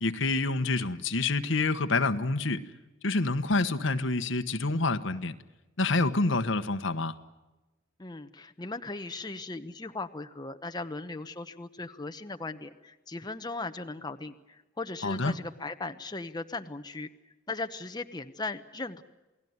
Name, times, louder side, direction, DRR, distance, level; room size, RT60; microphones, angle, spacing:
voice 1, 0.0-2.6 3.0-5.3 5.8-7.2 15.0-15.4, left 3 dB, 70° left, 1.4 m, -27 dB
voice 2, 8.0-17.1 17.5-19.0, left 3 dB, 20° left, 1.0 m, -38 dB
29.0 x 19.0 x 9.5 m
head